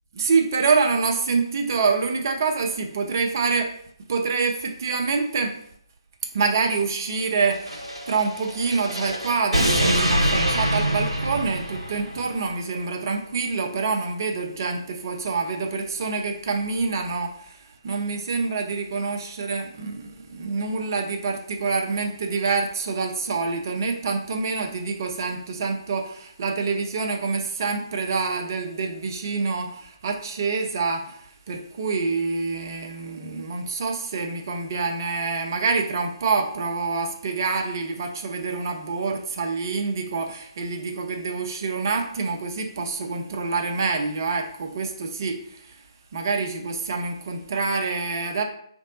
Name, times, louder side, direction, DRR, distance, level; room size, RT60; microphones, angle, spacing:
voice 1, 0.1-3.7 4.1-5.6 6.3-45.8 46.1-48.4, right 4 dB, 40° right, 3 dB, 0.5 m, -26 dB
sound 1, 7.5-12.3, equal, 85° right, 0.9 m, -25 dB
3.1 x 2.6 x 3.9 m, 0.65 s
figure-of-eight pair, 140°, 3 cm